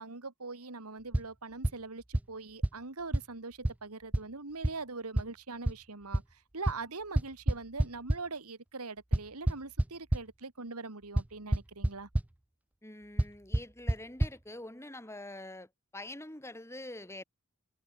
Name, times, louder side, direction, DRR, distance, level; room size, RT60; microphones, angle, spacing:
voice 1, 0.0-12.1, right 3 dB, 85° right, 2.1 m, -42 dB
sound 1, 1.1-1.2 1.6-1.7 2.1-2.2 2.6-2.7 3.1-3.2 3.6-3.7 4.1-4.2 4.6-4.7 5.2-5.3 5.7-5.8 6.1-6.2 6.7-6.8 7.2-8.2 9.1-10.2 11.2-11.3 11.5-11.9 12.1-12.2 13.2-13.3 13.5-13.6 13.9-14.0 14.2-14.3, right 1 dB, 5° right, 0.3 m, -26 dB
voice 2, 12.8-17.2, left 1 dB, 10° left, 3.4 m, -45 dB
head